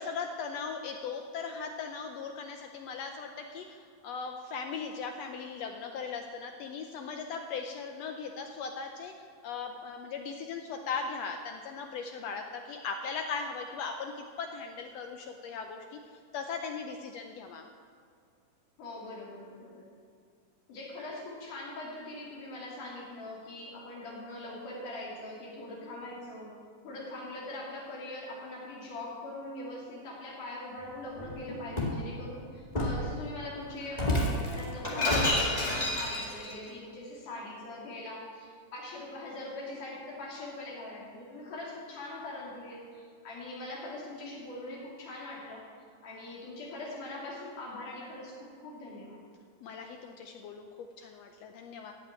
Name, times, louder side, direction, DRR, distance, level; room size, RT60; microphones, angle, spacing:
voice 1, 0.0-16.0 16.3-17.6 49.6-51.9, left 5 dB, 85° left, 4 dB, 1.5 m, -38 dB
voice 2, 18.8-19.9 20.7-26.5 26.8-45.7 46.0-49.2, left 2 dB, 70° left, -4 dB, 4.3 m, -42 dB
Shatter, 31.1-32.0 32.7-33.1 33.9-36.5, left 1 dB, 20° left, 1.2 m, -29 dB
15.5 x 6.0 x 8.7 m, 2.3 s
omnidirectional pair, 3.8 m